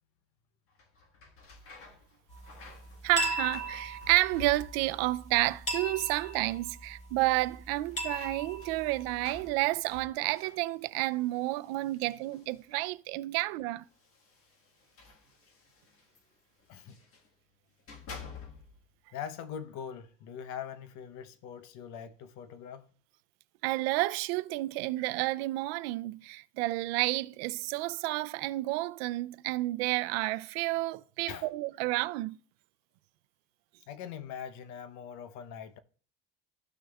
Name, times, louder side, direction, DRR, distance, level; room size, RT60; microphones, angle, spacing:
sound 1, 0.7-5.1 5.4-6.0 6.3-6.4 7.5-12.9 13.8-17.3 17.7-18.9, left 5 dB, 45° left, 1.6 m, -51 dB
sound 2, 2.3-9.5, equal, 25° left, 3.0 m, -39 dB
voice 1, 3.0-13.8 23.6-32.4, right 19 dB, 85° right, 0.5 m, -30 dB
voice 2, 19.1-22.9 31.3-31.5 33.9-35.8, left 8 dB, 70° left, 0.9 m, -42 dB
13.0 x 6.1 x 2.3 m
supercardioid pair, 110°, 30 cm